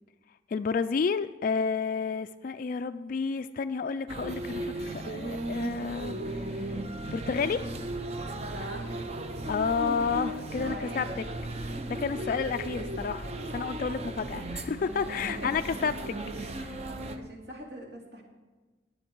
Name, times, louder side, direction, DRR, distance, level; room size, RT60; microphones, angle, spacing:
voice 1, 0.5-6.7 7.1-7.7 9.5-11.0 11.9-16.7, left 5 dB, 45° left, 10 dB, 0.3 m, -31 dB
Oxford Circus - Topshop crowds, 4.1-17.2, right 1 dB, 35° right, 0.6 m, -36 dB
voice 2, 8.5-9.1 10.5-11.2 14.5-14.8 15.3-15.6 16.6-18.2, equal, 65° right, 0 dB, 2.6 m, -43 dB
19.0 x 7.2 x 4.6 m, 1.2 s
head